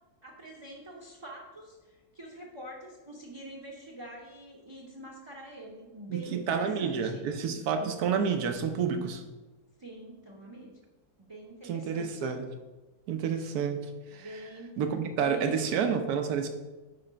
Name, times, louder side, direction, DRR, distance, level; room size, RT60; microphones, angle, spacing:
voice 1, 0.2-7.3 9.8-10.7 11.2-12.2 14.1-15.7, right 1 dB, 25° right, -2 dB, 0.6 m, -46 dB
voice 2, 6.1-9.2 11.6-12.5 13.1-13.8 14.1-14.3 14.8-16.5, right 6 dB, 80° right, 7 dB, 1.3 m, -29 dB
9.2 x 3.3 x 5.0 m, 1.2 s
omnidirectional pair, 1.6 m